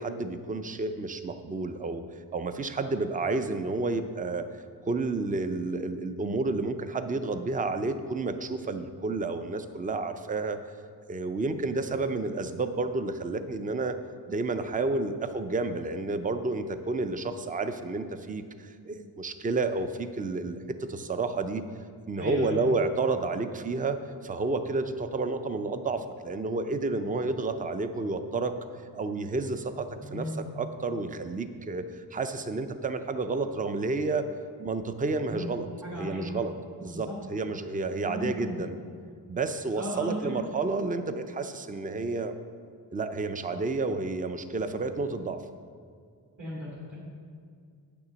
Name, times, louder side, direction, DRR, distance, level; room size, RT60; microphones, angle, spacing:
voice 1, 0.0-2.0 2.3-4.5 4.9-10.6 11.1-14.0 14.3-21.6 22.1-28.6 28.9-30.3 30.5-34.3 34.6-36.5 36.8-38.8 39.3-42.4 42.9-45.4, right 3 dB, 20° right, 9 dB, 0.4 m, -30 dB
voice 2, 22.1-22.6 30.0-30.4 35.3-35.4 35.8-36.3 36.9-37.2 38.0-38.6 39.8-40.4 46.4-47.0, equal, 45° right, -7 dB, 2.4 m, -36 dB
9.0 x 6.8 x 6.2 m, 2.2 s
wide cardioid pair, 140°, 40 cm